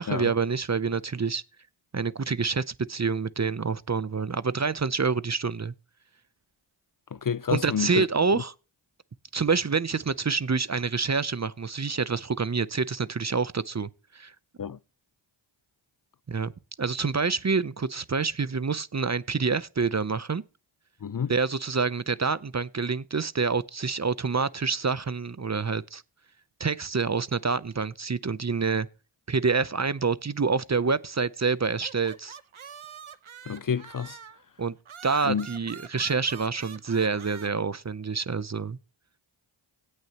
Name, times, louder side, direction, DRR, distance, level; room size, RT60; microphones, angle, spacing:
voice 1, 0.0-1.4 1.9-5.7 7.5-8.5 9.3-14.3 16.3-16.5 16.8-20.4 21.3-26.0 26.6-28.9 29.3-32.4 34.6-34.8 35.0-38.8, right 5 dB, 35° right, 0.6 m, -27 dB
voice 2, 7.1-8.1 8.3-8.4 14.6-14.8 21.0-21.3 33.5-34.2 35.2-35.5, left 7 dB, 45° left, 0.5 m, -29 dB
sound 1, 31.6-34.4 34.9-37.5, right 7 dB, 70° right, 0.9 m, -45 dB
17.5 x 6.5 x 2.9 m
wide cardioid pair, 45°, 50 cm